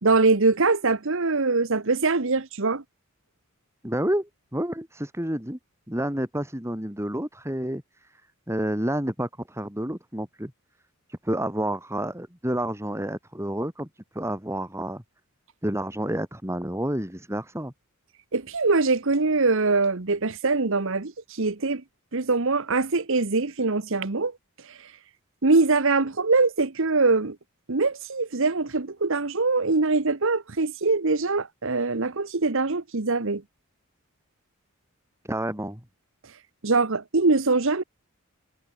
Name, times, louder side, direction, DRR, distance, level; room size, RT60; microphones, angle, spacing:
voice 1, 0.0-2.8 18.3-21.1 21.4-21.8 22.1-24.3 25.4-27.4 27.7-33.4 36.6-37.8, right 3 dB, 60° right, 1.2 m, -23 dB
voice 2, 3.8-5.6 5.9-7.8 8.5-10.5 11.1-15.0 15.6-17.7 35.3-35.8, right 1 dB, 10° right, 4.1 m, -29 dB
head